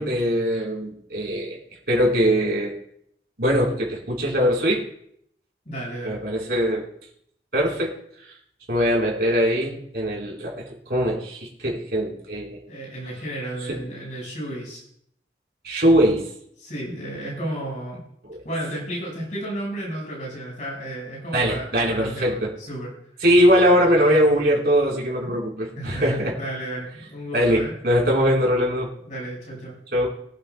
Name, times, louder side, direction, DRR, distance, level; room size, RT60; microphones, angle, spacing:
voice 1, 0.0-1.6 1.9-2.7 3.4-4.8 6.0-6.9 7.5-7.9 8.2-8.3 8.7-12.6 13.7-13.8 15.6-16.2 18.2-18.4 21.3-22.5 23.2-26.3 27.3-28.9 29.9-30.1, equal, 60° right, -3 dB, 3.9 m, -21 dB
voice 2, 5.6-6.2 12.7-14.8 16.6-18.0 18.4-22.9 25.2-25.4 25.8-27.7 29.0-29.8, right 1 dB, 45° left, -3 dB, 5.1 m, -33 dB
23.0 x 8.8 x 2.2 m, 0.71 s
head